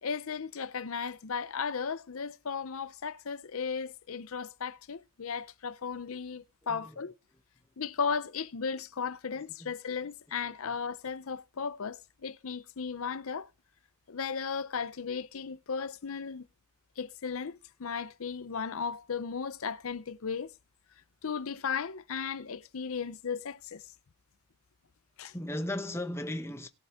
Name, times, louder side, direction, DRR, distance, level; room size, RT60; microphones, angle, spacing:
voice 1, 0.0-7.1 7.8-13.5 14.1-16.5 17.0-20.5 21.2-23.8 25.2-25.3, left 6 dB, 70° left, 0.6 m, -35 dB
voice 2, 6.6-7.0 9.4-9.7 25.3-26.7, left 1 dB, 10° left, 0.8 m, -36 dB
17.5 x 7.8 x 3.6 m
head